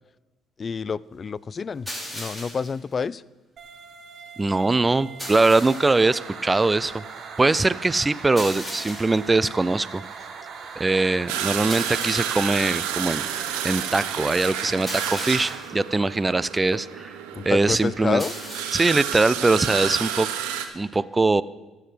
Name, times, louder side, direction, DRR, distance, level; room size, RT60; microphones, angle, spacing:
voice 1, 0.6-3.2 17.3-18.3, left 5 dB, 40° left, 22 dB, 0.3 m, -28 dB
sound 1, 1.9-2.8 5.2-6.0 8.4-9.3 11.7-12.5 14.9-15.8 18.2-19.0, equal, ahead, 4.5 m, -36 dB
sound 2, 3.6-15.6, right 5 dB, 55° right, 1.5 m, -40 dB
voice 2, 4.4-7.0 7.4-10.0 10.8-17.2 17.5-18.2 18.7-20.3 20.7-21.4, right 3 dB, 20° right, 18 dB, 0.4 m, -22 dB
sound 3, 11.3-20.6, right 9 dB, 90° right, 0.9 m, -30 dB
14.5 x 4.9 x 7.7 m, 1.2 s
supercardioid pair, 70°, 0 cm